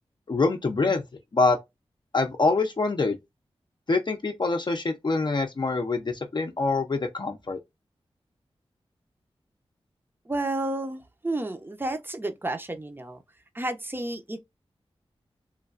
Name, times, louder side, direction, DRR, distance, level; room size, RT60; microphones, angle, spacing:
voice 1, 0.3-1.0 1.3-1.6 2.1-3.2 3.9-7.6, left 3 dB, 45° left, 0.5 m, -25 dB
voice 2, 10.3-13.2 13.5-14.4, right 2 dB, 20° right, 0.6 m, -31 dB
3.1 x 2.2 x 2.4 m
cardioid pair, 55°, 11 cm